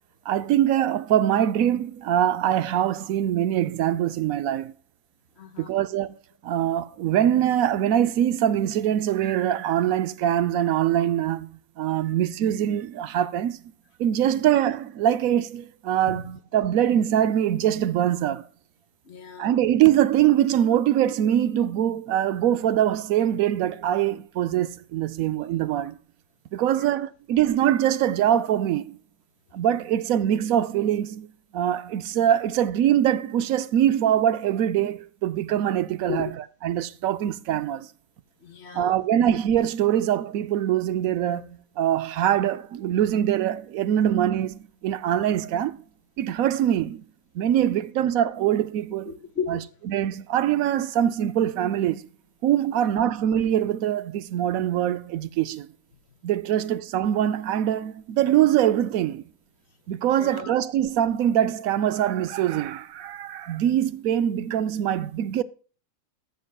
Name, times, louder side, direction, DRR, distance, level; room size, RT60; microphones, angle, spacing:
voice 1, 0.3-4.7 5.6-6.2 6.4-13.6 14.0-18.5 19.4-26.0 26.5-29.0 29.5-31.3 31.5-36.3 36.6-37.9 38.7-45.8 46.2-47.0 47.3-49.1 49.5-49.6 49.9-52.1 52.4-55.7 56.2-59.2 59.9-65.4, right 11 dB, 80° right, 1.0 m, -23 dB
voice 2, 5.4-5.7 16.1-16.3 19.0-19.5 26.8-26.9 36.1-36.3 38.4-39.0 49.0-49.7 60.1-60.5, left 6 dB, 55° left, 1.2 m, -34 dB
15.0 x 6.7 x 2.3 m
omnidirectional pair, 1.5 m